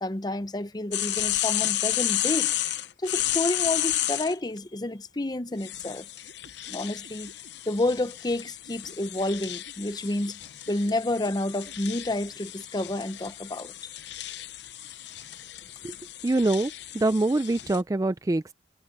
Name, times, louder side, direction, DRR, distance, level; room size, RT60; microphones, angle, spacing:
voice 1, 0.0-2.5 3.0-6.1 6.7-7.3 7.7-10.4 10.7-13.7, left 2 dB, 20° left, 0.7 m, -29 dB
sound 1, 0.9-4.3 5.6-17.8, left 13 dB, 60° left, 0.7 m, -32 dB
sound 2, 6.3-12.1, right 2 dB, 85° right, 2.8 m, -52 dB
voice 2, 16.2-18.5, right 2 dB, 20° right, 0.3 m, -25 dB
head